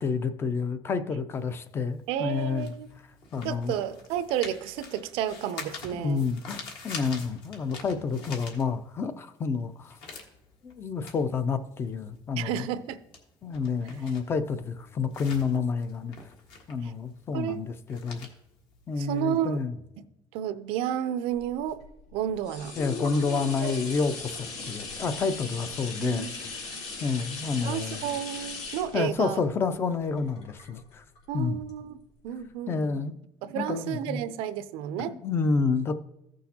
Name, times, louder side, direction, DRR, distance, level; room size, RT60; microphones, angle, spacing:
voice 1, 0.0-2.7 3.3-3.7 5.9-10.0 10.6-12.7 13.4-16.2 16.7-18.3 18.9-19.8 22.8-26.6 27.0-28.0 28.9-31.0 31.3-31.6 32.7-33.1 33.5-34.2 35.0-36.0, left 5 dB, 25° left, 12 dB, 0.5 m, -29 dB
sound 1, 1.4-9.1 9.5-19.5, left 4 dB, 60° left, 1.5 m, -45 dB
voice 2, 2.1-2.9 3.4-6.3 7.9-8.0 12.4-13.0 16.8-16.9 17.3-17.6 19.0-19.6 20.3-21.8 22.1-22.8 23.6-23.7 26.0-26.3 27.6-29.4 31.3-32.0 32.2-33.0 33.4-35.1, right 10 dB, 80° right, 13 dB, 0.5 m, -31 dB
sound 2, 21.4-31.2 31.7-31.8, left 4 dB, 80° left, 3.1 m, -39 dB
14.5 x 6.2 x 2.8 m, 0.86 s
cardioid pair, 170°, 9 cm